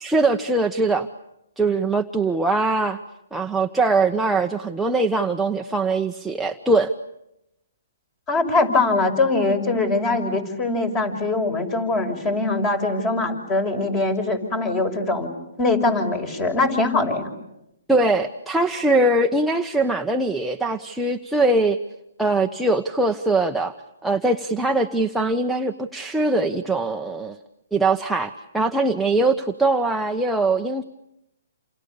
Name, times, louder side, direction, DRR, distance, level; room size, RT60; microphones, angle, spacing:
voice 1, 0.0-1.1 1.6-3.0 3.3-6.9 17.9-21.8 22.2-23.7 24.0-27.4 27.7-30.8, right 2 dB, 5° right, 2 dB, 1.0 m, -22 dB
voice 2, 8.3-15.3 15.6-17.3, left 3 dB, 20° left, 10 dB, 6.1 m, -22 dB
29.5 x 28.0 x 6.8 m, 0.84 s
hypercardioid pair, 150°, 0 cm